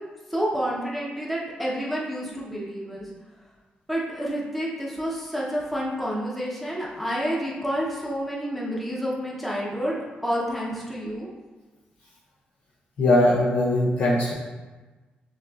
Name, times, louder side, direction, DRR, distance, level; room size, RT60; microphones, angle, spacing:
voice 1, 0.3-3.1 3.9-11.3, equal, ahead, -5 dB, 0.9 m, -29 dB
voice 2, 13.0-14.3, left 1 dB, 75° left, -7 dB, 0.7 m, -20 dB
6.4 x 3.0 x 2.4 m, 1.2 s
cardioid pair, 115°, 3 cm